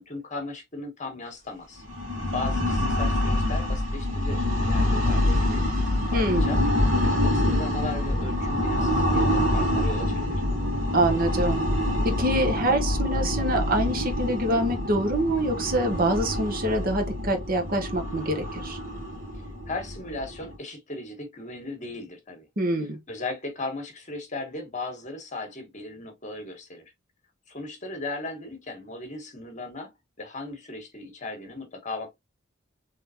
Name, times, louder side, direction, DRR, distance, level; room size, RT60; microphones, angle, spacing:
voice 1, 0.0-1.8 2.3-5.7 6.1-6.6 7.0-10.4 19.7-22.5 23.1-26.9 27.5-32.2, left 2 dB, 40° left, 1.4 m, -37 dB
sound 1, 1.8-20.5, left 1 dB, 70° right, 1.9 m, -26 dB
voice 2, 6.1-6.6 10.9-11.7 12.0-18.8 22.6-23.0, right 1 dB, 45° right, 1.0 m, -25 dB
3.7 x 3.4 x 2.8 m
head